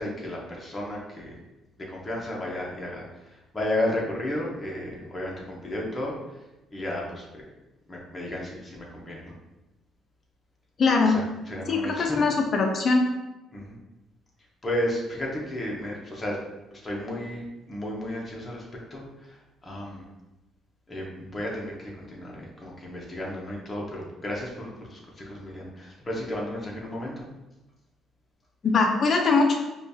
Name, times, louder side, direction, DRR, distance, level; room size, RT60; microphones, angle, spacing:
voice 1, 0.0-1.4 1.8-6.2 6.7-7.4 7.9-9.3 11.0-12.2 13.5-13.8 14.6-16.4 16.7-20.1 20.9-27.3, left 1 dB, 15° left, -3 dB, 0.8 m, -33 dB
voice 2, 10.8-11.2 11.7-13.1 28.6-29.6, left 4 dB, 35° left, 1 dB, 0.4 m, -21 dB
5.0 x 2.3 x 2.6 m, 1.0 s
cardioid pair, 150°, 0 cm